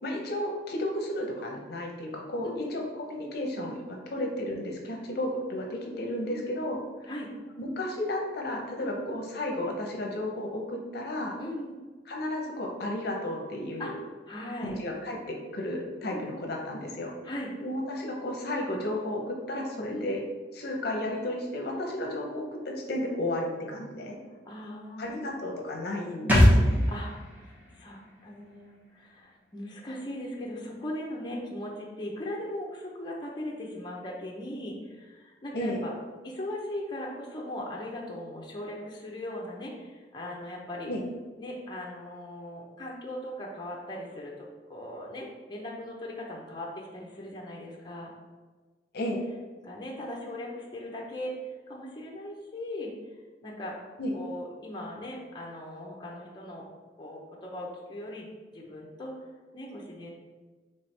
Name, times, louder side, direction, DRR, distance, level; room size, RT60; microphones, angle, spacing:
voice 1, 0.0-7.1 7.6-11.4 12.1-14.0 14.6-17.1 17.6-20.2 20.5-24.2 25.0-26.9 35.5-35.8 40.9-41.0 48.9-49.2 54.0-54.2, left 1 dB, 60° left, 1 dB, 0.7 m, -33 dB
voice 2, 2.4-2.8 4.2-4.3 6.3-6.6 7.1-7.3 8.8-9.0 11.4-11.8 13.8-13.9 14.3-14.8 16.1-16.2 17.2-17.5 19.9-20.1 24.5-25.4 26.9-35.9 36.2-40.9 41.4-44.3 44.7-48.1 49.6-51.3 51.7-52.9 53.4-53.8 54.1-56.7 57.0-59.3 59.5-60.1, left 1 dB, 25° left, -2 dB, 0.7 m, -39 dB
sound 1, 26.3-29.8 30.1-30.2, equal, 10° right, 0.8 m, -25 dB
4.5 x 3.4 x 3.3 m, 1.3 s
head